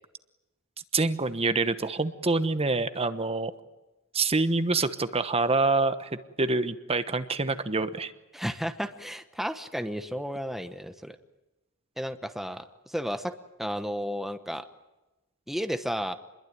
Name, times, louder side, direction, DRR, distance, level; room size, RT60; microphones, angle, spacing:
voice 1, 0.9-3.5 4.1-8.1, right 3 dB, 25° right, 11 dB, 1.1 m, -26 dB
voice 2, 8.3-11.2 12.0-13.3 13.6-14.6 15.5-16.2, equal, ahead, 9 dB, 1.0 m, -33 dB
28.0 x 21.5 x 9.4 m, 1.0 s
head